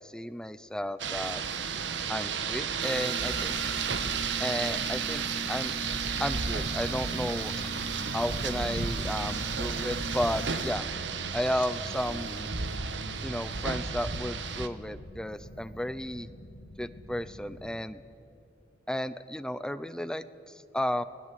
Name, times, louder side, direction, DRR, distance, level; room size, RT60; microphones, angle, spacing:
voice 1, 0.0-1.4 2.1-3.5 4.4-5.7 6.2-7.7 8.1-10.8 11.3-12.5 13.2-16.3 16.8-18.0 18.9-21.0, equal, 5° left, 14 dB, 0.6 m, -33 dB
Rain, 1.0-14.7, right 5 dB, 70° right, 1.3 m, -33 dB
sound 1, 2.8-10.7, right 2 dB, 55° right, 3.2 m, -40 dB
sound 2, 4.0-17.7, left 1 dB, 60° left, 3.3 m, -48 dB
26.0 x 19.5 x 8.4 m, 2.7 s
head